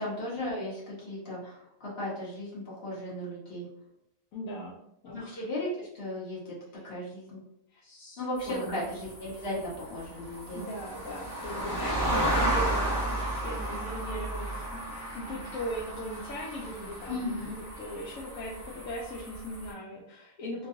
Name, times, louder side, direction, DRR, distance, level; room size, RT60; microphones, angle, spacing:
voice 1, 0.0-3.7 5.1-6.6 6.8-7.4 8.2-10.6 17.1-17.6, left 1 dB, 45° left, -7 dB, 1.4 m, -36 dB
voice 2, 4.3-4.8 5.0-5.4 7.7-8.9 9.5-9.6 10.5-13.2 13.4-20.7, equal, 85° left, -5 dB, 1.0 m, -39 dB
sound 1, 8.4-19.7, right 1 dB, 15° left, 1.3 m, -33 dB
3.0 x 2.6 x 2.6 m, 0.77 s
omnidirectional pair, 1.4 m